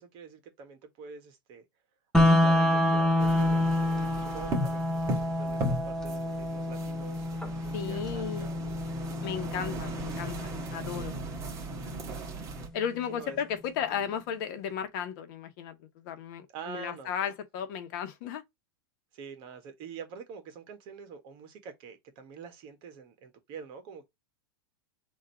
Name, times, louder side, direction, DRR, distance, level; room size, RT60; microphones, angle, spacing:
voice 1, 0.0-1.6 2.1-8.6 13.1-13.4 13.9-14.2 16.5-17.1 19.1-24.1, right 6 dB, 40° right, 1.4 m, -46 dB
sound 1, 2.1-12.1, left 1 dB, 5° left, 0.8 m, -28 dB
sound 2, 3.2-12.7, right 1 dB, 25° right, 1.5 m, -37 dB
voice 2, 7.7-8.5 9.2-11.2 12.7-18.4, left 8 dB, 55° left, 1.2 m, -35 dB
3.7 x 2.7 x 4.5 m
supercardioid pair, 145°, 13 cm